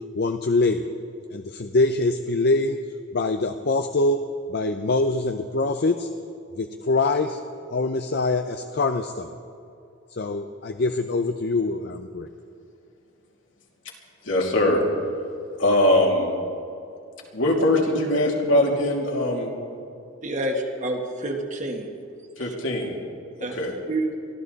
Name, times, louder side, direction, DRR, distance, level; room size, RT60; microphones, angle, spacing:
voice 1, 0.1-0.8 1.3-2.8 3.1-4.2 4.5-6.1 6.6-7.4 7.7-9.3 10.1-12.3, left 2 dB, 55° left, 7 dB, 0.6 m, -24 dB
voice 2, 14.2-14.8 15.6-16.3 17.3-19.5 22.4-22.9 23.5-23.8, left 1 dB, 75° left, -1 dB, 2.9 m, -21 dB
voice 3, 20.2-21.9 23.4-23.6 23.9-24.1, right 1 dB, 40° right, 2 dB, 1.7 m, -28 dB
23.5 x 14.5 x 4.1 m, 2.5 s
head